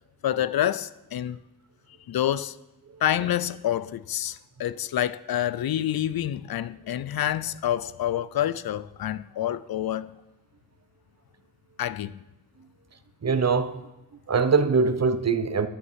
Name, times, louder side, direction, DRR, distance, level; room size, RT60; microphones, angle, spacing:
voice 1, 0.2-1.4 2.1-2.6 3.0-10.2 11.8-12.2, left 11 dB, 75° left, 0.5 m, -27 dB
voice 2, 13.2-13.8 14.3-15.7, right 5 dB, 45° right, 0.8 m, -22 dB
11.0 x 6.4 x 7.3 m
cardioid pair, 65°, 36 cm